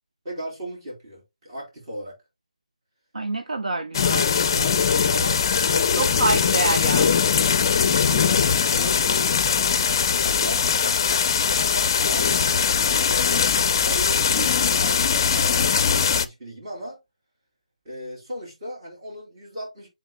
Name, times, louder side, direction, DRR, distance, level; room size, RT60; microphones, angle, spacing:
voice 1, 0.2-2.2 4.5-6.4 7.4-9.8 10.2-13.5 13.8-17.0 17.8-19.9, equal, 35° right, 4.0 m, -37 dB
voice 2, 3.1-4.3 6.0-7.2, right 3 dB, 75° right, 0.8 m, -26 dB
sound 1, 3.9-16.3, left 6 dB, 35° left, 0.5 m, -21 dB
11.0 x 4.0 x 2.2 m
figure-of-eight pair, 160°, 4 cm